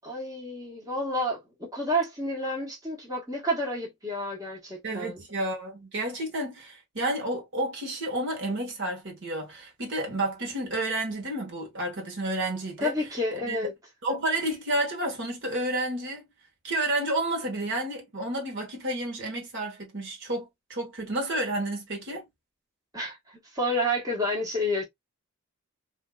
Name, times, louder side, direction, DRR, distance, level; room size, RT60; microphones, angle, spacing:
voice 1, 0.0-5.2 12.8-13.7 22.9-24.8, equal, 15° right, 1.2 m, -30 dB
voice 2, 4.8-12.9 13.3-13.6 14.0-16.3 16.6-22.2, right 1 dB, 55° right, 1.3 m, -30 dB
3.6 x 2.7 x 2.3 m
head